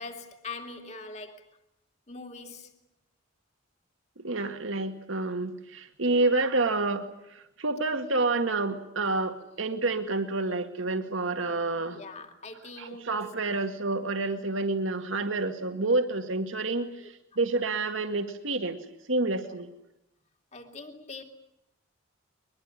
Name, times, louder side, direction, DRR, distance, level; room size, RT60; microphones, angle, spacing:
voice 1, 0.0-1.4 2.1-2.8 6.0-6.3 11.9-13.2 17.0-17.1 19.4-19.5 20.5-21.2, left 3 dB, 35° left, 2.6 m, -43 dB
voice 2, 4.2-12.0 12.8-19.7, right 3 dB, 80° right, 2.1 m, -29 dB
22.5 x 22.5 x 9.8 m
head